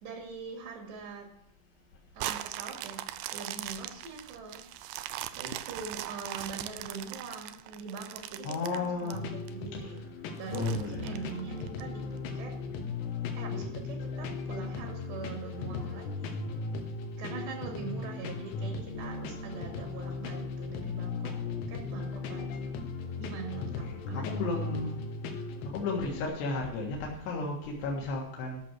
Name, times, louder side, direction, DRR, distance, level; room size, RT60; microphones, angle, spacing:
voice 1, 0.0-1.3 2.1-4.6 5.3-10.0 10.4-12.5 13.3-16.4 17.2-22.7 23.2-24.8, right 4 dB, 70° right, 1 dB, 4.3 m, -43 dB
sound 1, 2.2-9.5 10.0-10.1 10.5-11.8 12.4-12.5, right 14 dB, 90° right, 2.1 m, -39 dB
voice 2, 8.4-9.2 10.5-11.2 17.7-18.5 23.5-25.0 25.7-28.6, left 3 dB, 75° left, -2 dB, 3.7 m, -34 dB
sound 2, 9.1-26.3, left 3 dB, 90° left, 3.5 m, -37 dB
13.5 x 6.3 x 6.0 m, 0.74 s
omnidirectional pair, 5.1 m